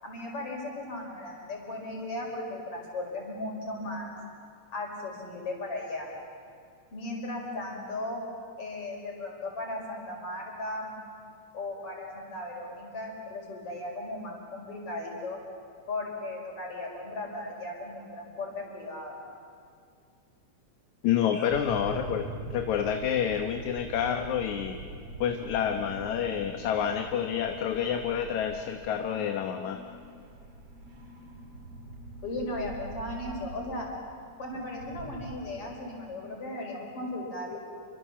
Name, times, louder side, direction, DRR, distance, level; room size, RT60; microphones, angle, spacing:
voice 1, 0.0-4.2 4.7-6.1 6.9-8.2 8.6-10.9 11.5-15.4 15.9-19.2 21.3-21.5 32.2-33.9 34.4-37.6, left 2 dB, 50° left, 0 dB, 6.0 m, -36 dB
voice 2, 21.0-22.3 22.5-24.8 25.2-29.8, left 9 dB, 75° left, 5 dB, 2.5 m, -28 dB
sound 1, 21.5-35.4, right 2 dB, 50° right, 3.5 m, -44 dB
29.0 x 24.5 x 7.3 m, 2.3 s
omnidirectional pair, 3.4 m